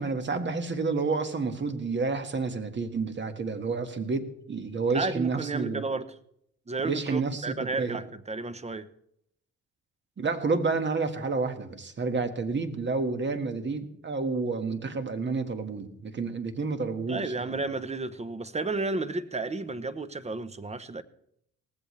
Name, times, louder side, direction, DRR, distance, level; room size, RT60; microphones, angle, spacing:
voice 1, 0.0-5.8 6.8-8.0 10.2-17.3, right 4 dB, 40° right, 1.8 m, -30 dB
voice 2, 4.9-6.1 6.7-8.9 17.1-21.0, right 3 dB, 20° right, 0.9 m, -32 dB
18.5 x 15.5 x 3.3 m
cardioid pair, 90°, 30 cm